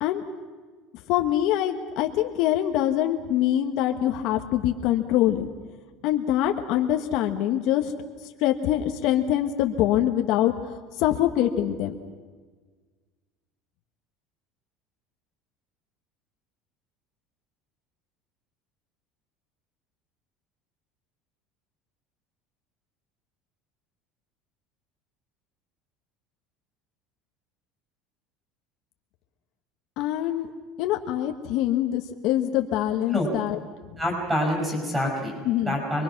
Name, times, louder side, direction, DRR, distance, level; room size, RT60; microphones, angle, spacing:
voice 1, 1.1-5.5 6.0-7.9 8.4-10.5 11.0-11.9 30.0-30.5 30.8-33.6 35.4-35.8, left 12 dB, 60° left, 4 dB, 1.4 m, -24 dB
voice 2, 34.0-35.3 35.7-36.0, left 1 dB, 10° right, 0 dB, 6.9 m, -26 dB
26.0 x 22.5 x 6.0 m, 1.5 s
cardioid pair, 155°, 0 cm